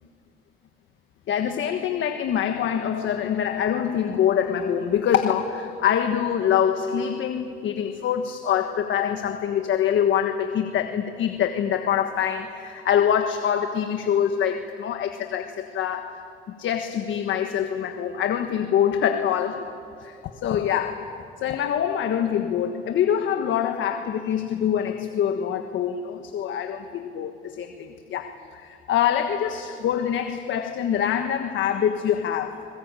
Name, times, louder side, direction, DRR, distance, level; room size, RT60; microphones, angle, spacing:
voice 1, 1.3-32.7, left 9 dB, 75° left, 1.4 m, -25 dB
28.5 x 21.0 x 9.0 m
cardioid pair, 90°, 20 cm